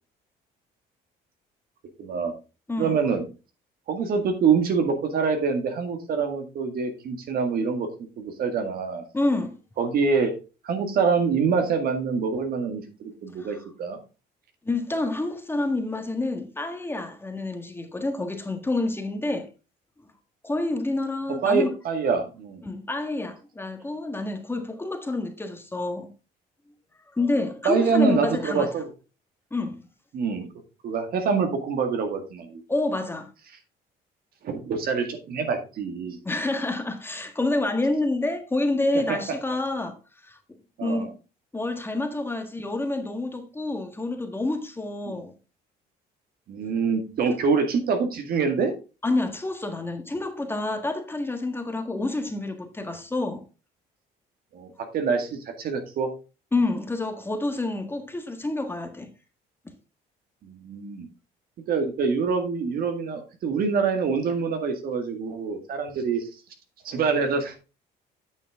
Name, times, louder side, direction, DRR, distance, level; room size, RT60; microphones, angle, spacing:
voice 1, 2.0-2.3 2.8-3.2 3.9-9.0 9.8-10.3 10.6-14.0 21.4-22.6 27.6-28.9 30.1-30.4 30.8-32.6 34.4-36.2 40.8-41.1 45.1-45.2 46.5-48.7 54.5-56.1 60.4-61.1 61.7-66.2 66.8-67.6, right 5 dB, 60° right, 1.9 m, -25 dB
voice 2, 9.1-9.6 13.4-13.6 14.6-19.5 20.4-21.7 22.6-26.1 27.1-28.7 29.5-29.8 32.7-33.3 36.2-40.0 40.2-40.4 40.8-41.1 41.5-45.3 47.3-47.4 49.0-53.4 56.5-59.1, left 2 dB, 15° left, 1.5 m, -28 dB
8.9 x 6.4 x 3.6 m
cardioid pair, 110°, 17 cm